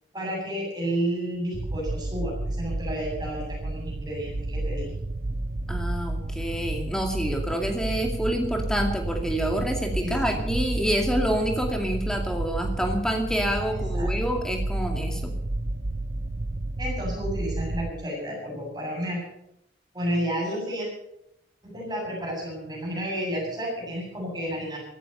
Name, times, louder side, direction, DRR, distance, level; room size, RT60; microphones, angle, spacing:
voice 1, 0.1-4.9 10.0-10.4 13.7-14.1 16.8-19.2 19.9-20.9 21.6-24.8, equal, 20° right, -2 dB, 7.8 m, -31 dB
sound 1, 1.5-17.9, right 2 dB, 45° right, 0.6 m, -31 dB
voice 2, 5.7-15.3, equal, 5° left, 3 dB, 2.3 m, -27 dB
16.0 x 13.5 x 6.7 m, 0.79 s
head